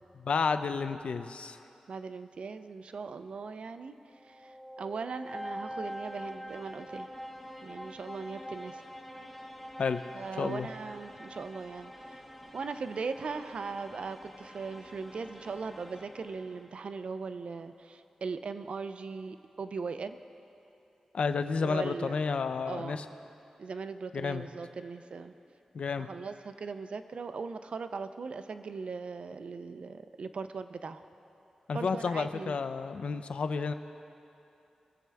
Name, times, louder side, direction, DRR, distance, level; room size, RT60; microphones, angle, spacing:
voice 1, 0.2-1.6 9.8-10.0 10.4-10.7 21.1-23.0 24.1-24.5 25.7-26.1 31.7-33.7, left 5 dB, 70° left, 10 dB, 0.5 m, -31 dB
voice 2, 1.9-4.0 4.2-7.1 7.6-8.8 10.1-12.2 12.5-20.2 21.6-22.2 22.7-23.0 23.6-25.3 26.0-31.0 31.7-32.6, right 4 dB, 65° right, 10 dB, 0.5 m, -39 dB
sound 1, 4.1-16.9, equal, ahead, 1.2 m, -45 dB
22.5 x 7.5 x 3.5 m, 2.8 s
wide cardioid pair, 90°, 2 cm